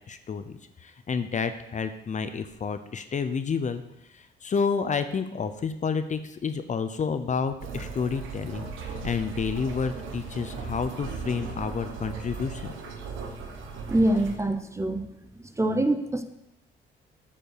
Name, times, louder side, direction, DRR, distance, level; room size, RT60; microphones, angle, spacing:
voice 1, 0.0-3.8 4.1-12.7, left 5 dB, 40° left, 10 dB, 0.7 m, -30 dB
sound 1, 7.6-14.4, right 5 dB, 80° right, 1.2 m, -37 dB
voice 2, 13.9-15.0 15.6-16.2, right 1 dB, 15° right, 8 dB, 0.8 m, -24 dB
8.9 x 5.5 x 6.7 m, 0.85 s
cardioid pair, 90°, 20 cm